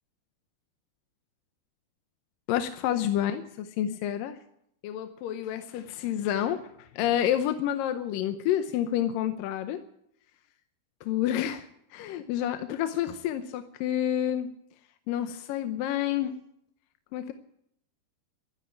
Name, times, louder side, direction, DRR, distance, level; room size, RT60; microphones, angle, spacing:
voice 1, 2.5-4.4 4.8-9.8 11.0-11.7 11.9-14.5 15.1-16.4 17.1-17.3, left 11 dB, 75° left, 8 dB, 2.2 m, -29 dB
13.5 x 12.0 x 8.9 m, 0.74 s
omnidirectional pair, 4.5 m